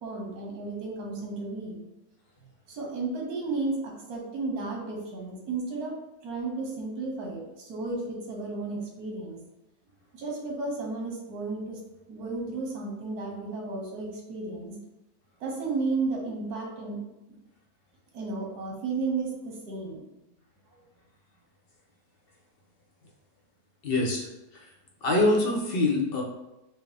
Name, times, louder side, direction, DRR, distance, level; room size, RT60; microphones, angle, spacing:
voice 1, 0.0-1.9 2.7-5.9 6.2-9.4 10.1-11.8 12.1-14.7 15.4-17.0 18.1-20.0 20.7-20.8, right 3 dB, 85° right, -1 dB, 1.4 m, -33 dB
voice 2, 23.8-24.3 25.0-26.2, left 2 dB, 50° left, -1 dB, 0.8 m, -24 dB
4.5 x 2.2 x 3.4 m, 0.96 s
omnidirectional pair, 1.6 m